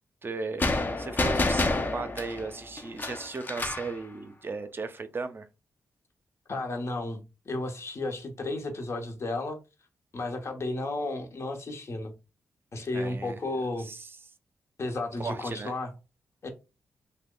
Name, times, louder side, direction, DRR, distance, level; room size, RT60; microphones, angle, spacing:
voice 1, 0.2-5.5 12.8-13.4 13.8-14.1 15.2-15.7, right 4 dB, 40° right, 0.5 m, -36 dB
sound 1, 0.6-3.9, left 2 dB, 35° left, 0.5 m, -28 dB
voice 2, 6.5-9.6 10.1-12.1 12.7-13.9 14.8-15.9 16.4-16.5, left 2 dB, 50° left, 0.9 m, -33 dB
2.8 x 2.2 x 3.7 m
cardioid pair, 60°, 6 cm